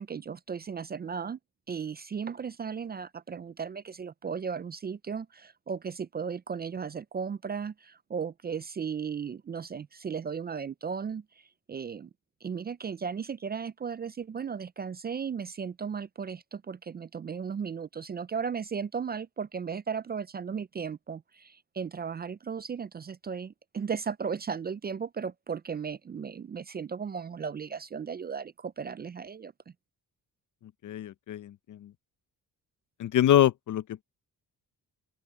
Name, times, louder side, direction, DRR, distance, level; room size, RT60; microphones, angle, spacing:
voice 1, 0.0-1.4 1.7-12.1 12.4-29.5, right 6 dB, 30° right, 0.4 m, -36 dB
voice 2, 30.8-31.9 33.0-34.0, left 11 dB, 60° left, 0.6 m, -25 dB
open air
cardioid pair, 105°, 35 cm